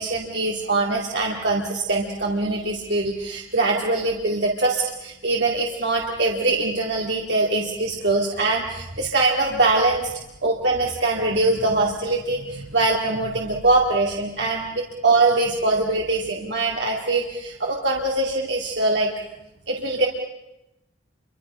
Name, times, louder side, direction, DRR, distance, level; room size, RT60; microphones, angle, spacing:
voice 1, 0.0-10.1 10.4-19.1 19.7-20.1, right 2 dB, 60° right, -1 dB, 2.3 m, -23 dB
28.5 x 25.0 x 5.5 m, 0.91 s
head